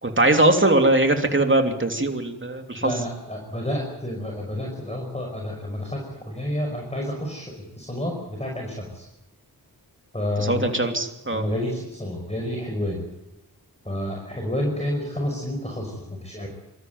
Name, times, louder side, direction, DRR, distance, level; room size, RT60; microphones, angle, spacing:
voice 1, 0.0-2.9 10.4-11.4, right 2 dB, 30° right, 4 dB, 3.2 m, -21 dB
voice 2, 2.8-9.1 10.1-10.7 11.3-13.0 13.8-16.5, left 1 dB, 15° left, 0 dB, 5.6 m, -30 dB
26.0 x 13.5 x 9.4 m, 0.97 s
cardioid pair, 45°, 39 cm